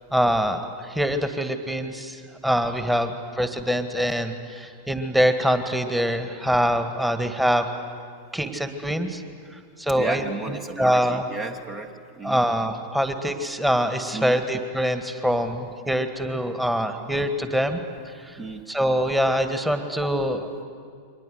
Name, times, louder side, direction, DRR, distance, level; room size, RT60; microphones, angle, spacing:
voice 1, 0.1-7.7 8.3-9.2 9.8-11.2 12.2-17.8 18.2-18.4 18.7-20.6, equal, 5° right, 8 dB, 1.8 m, -24 dB
voice 2, 10.0-12.4 14.1-14.4 18.4-18.6, right 3 dB, 25° right, 5 dB, 1.5 m, -33 dB
29.5 x 24.0 x 8.1 m, 2.2 s
figure-of-eight pair, 90°, 0 cm